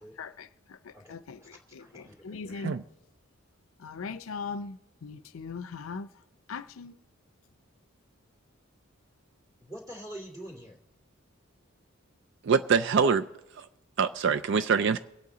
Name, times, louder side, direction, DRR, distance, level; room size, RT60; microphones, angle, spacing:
voice 1, 0.2-2.8 3.8-6.1 6.5-7.0, left 5 dB, 75° left, 0.5 m, -40 dB
voice 2, 0.9-2.6 9.6-10.8, right 1 dB, 15° right, 2.6 m, -46 dB
voice 3, 12.4-13.3 13.6-13.7 14.0-15.0, right 6 dB, 60° right, 0.4 m, -24 dB
24.0 x 8.5 x 3.9 m
head